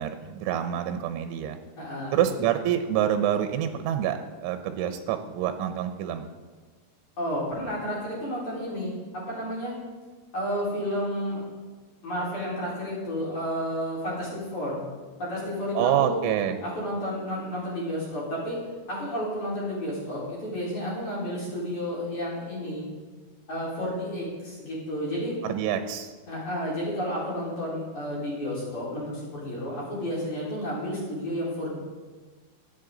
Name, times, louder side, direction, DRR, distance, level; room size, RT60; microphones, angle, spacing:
voice 1, 0.0-1.6 2.1-6.3 15.8-16.6 25.4-26.1, right 10 dB, 80° right, 8 dB, 3.0 m, -27 dB
voice 2, 1.8-2.2 7.2-9.7 10.3-11.4 12.0-14.8 15.2-16.2 16.6-18.6 18.9-22.8 23.5-25.4 26.2-31.8, equal, 40° left, -7 dB, 4.9 m, -31 dB
24.5 x 8.2 x 3.8 m, 1.4 s
omnidirectional pair, 5.6 m